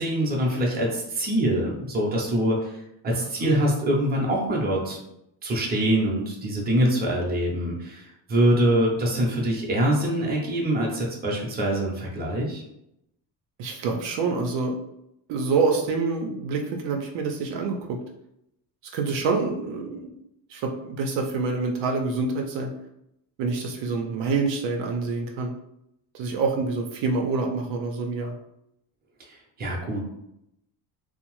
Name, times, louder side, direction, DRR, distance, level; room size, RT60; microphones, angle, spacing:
voice 1, 0.0-2.8 3.0-5.0 5.4-12.6 29.6-30.0, right 1 dB, 20° right, -2 dB, 0.6 m, -24 dB
voice 2, 3.1-3.6 13.6-14.8 15.3-18.0 18.9-20.1 20.5-22.7 23.4-25.5 26.1-28.4, right 4 dB, 65° right, 2 dB, 0.6 m, -27 dB
2.8 x 2.0 x 3.0 m, 0.81 s
cardioid pair, 140°, 47 cm